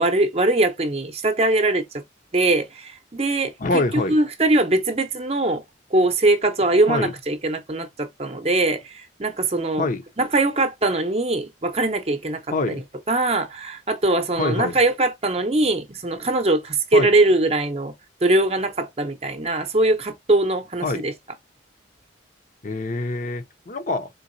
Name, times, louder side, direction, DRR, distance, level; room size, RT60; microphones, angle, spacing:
voice 1, 0.0-2.0 2.3-3.8 4.1-5.6 5.9-9.9 10.2-12.4 12.7-12.8 13.1-17.9 18.2-21.1, right 2 dB, 30° right, 0.7 m, -21 dB
voice 2, 3.6-4.2 6.9-7.1 9.8-10.0 12.5-12.8 14.4-14.8 16.9-17.1 20.8-21.0 22.6-24.1, left 2 dB, 40° left, 0.6 m, -25 dB
3.9 x 3.7 x 2.6 m
head